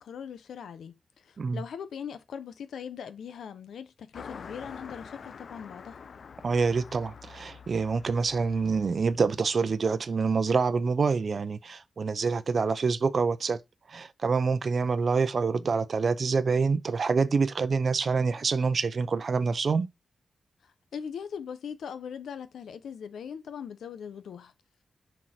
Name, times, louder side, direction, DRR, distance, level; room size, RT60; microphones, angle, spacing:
voice 1, 0.0-6.0 20.6-24.5, left 7 dB, 85° left, 1.0 m, -40 dB
Car passing by, 4.1-10.0, left 6 dB, 60° left, 0.5 m, -47 dB
voice 2, 6.4-13.6 13.9-19.9, right 4 dB, 50° right, 0.7 m, -26 dB
6.3 x 4.6 x 4.4 m
cardioid pair, 85°, 0 cm